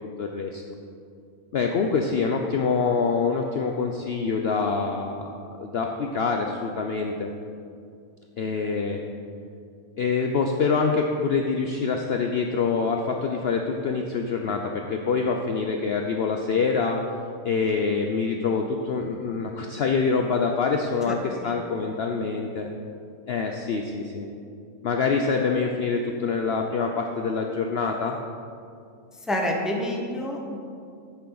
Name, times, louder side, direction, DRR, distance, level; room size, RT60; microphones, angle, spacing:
voice 1, 0.2-0.6 1.5-7.3 8.4-9.1 10.0-17.0 17.4-22.7 23.3-24.3 24.8-28.2, left 5 dB, 60° left, 3 dB, 0.7 m, -25 dB
voice 2, 21.1-21.7 29.3-30.6, left 1 dB, ahead, 1 dB, 0.8 m, -29 dB
10.5 x 8.5 x 3.9 m, 2.4 s
omnidirectional pair, 1.5 m